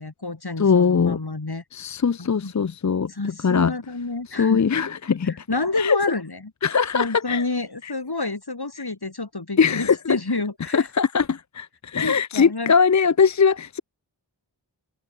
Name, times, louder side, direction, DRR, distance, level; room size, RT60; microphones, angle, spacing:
voice 1, 0.0-1.6 2.4-2.5 3.1-4.6 5.2-6.4 6.9-10.9 12.0-12.7, left 3 dB, 60° left, 6.0 m, -29 dB
voice 2, 0.6-1.2 1.7-3.7 4.4-5.4 5.8-6.0 6.6-7.4 7.8-7.9 9.6-10.0 10.7-13.8, left 6 dB, 40° left, 0.6 m, -21 dB
wide cardioid pair, 55°, 43 cm